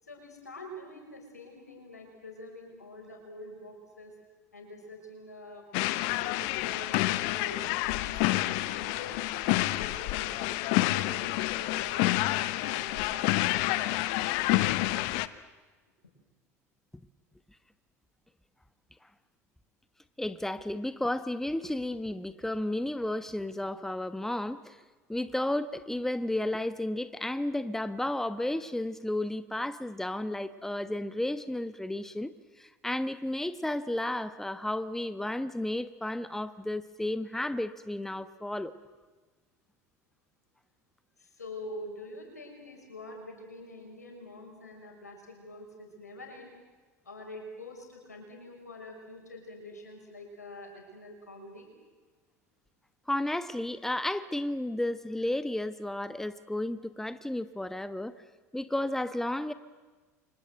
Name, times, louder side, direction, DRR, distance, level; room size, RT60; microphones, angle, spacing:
voice 1, 0.0-4.1 4.5-5.6 6.2-7.6 8.0-10.6 10.9-12.2 12.6-13.8 14.1-15.0 16.0-16.1 41.2-46.5 47.0-51.7, left 1 dB, 90° left, 2 dB, 6.2 m, -46 dB
sound 1, 5.7-15.3, left 18 dB, 60° left, 1.0 m, -28 dB
voice 2, 20.2-24.8 25.1-32.3 32.6-38.7 53.1-58.1 58.5-59.5, left 1 dB, 5° left, 12 dB, 1.2 m, -32 dB
30.0 x 25.0 x 7.8 m, 1.3 s
figure-of-eight pair, 70°, 9 cm